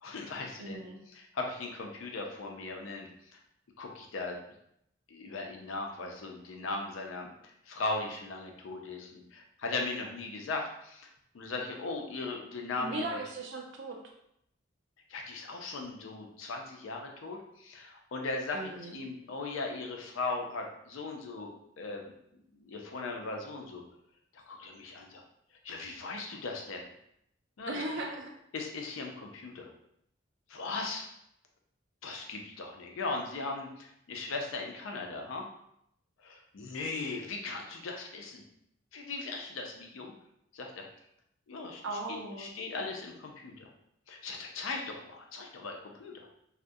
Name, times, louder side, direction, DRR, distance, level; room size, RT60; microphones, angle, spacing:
voice 1, 0.0-0.8 1.1-3.1 3.8-4.4 5.1-11.1 11.3-13.2 15.1-21.5 21.8-22.1 22.5-23.8 24.3-25.2 25.6-26.8 27.6-28.0 28.5-29.7 30.5-31.0 32.0-35.5 36.2-38.4 38.9-40.1 40.5-40.9 41.5-41.8 42.4-43.7 44.1-46.3, left 3 dB, 85° left, 2 dB, 0.5 m, -38 dB
voice 2, 0.6-1.0 12.8-14.0 18.5-19.0 27.7-28.3 41.8-42.5, right 2 dB, 65° right, 1 dB, 0.5 m, -37 dB
2.3 x 2.1 x 2.6 m, 0.75 s
head